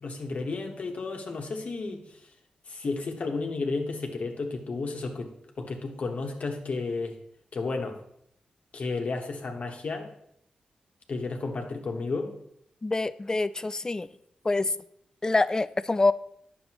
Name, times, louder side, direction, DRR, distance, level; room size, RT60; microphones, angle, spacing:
voice 1, 0.0-2.3 2.7-5.3 5.6-7.2 7.5-8.0 8.7-10.1 11.1-12.3, left 3 dB, 60° left, 3 dB, 1.2 m, -32 dB
voice 2, 12.8-14.1 14.4-14.7 15.2-16.1, left 3 dB, 25° left, 15 dB, 0.3 m, -25 dB
9.5 x 6.7 x 3.0 m, 0.71 s
cardioid pair, 65°, 3 cm